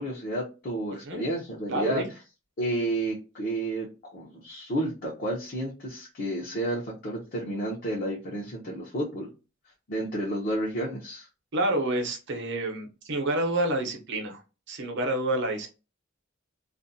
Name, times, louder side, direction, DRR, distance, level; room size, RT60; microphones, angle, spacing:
voice 1, 0.0-2.0 2.6-9.3 9.9-11.3, right 1 dB, 45° left, -4 dB, 0.7 m, -31 dB
voice 2, 1.7-2.0 11.5-14.4 14.7-15.7, right 1 dB, 60° right, 3 dB, 0.8 m, -28 dB
2.5 x 2.1 x 2.6 m, 0.30 s
head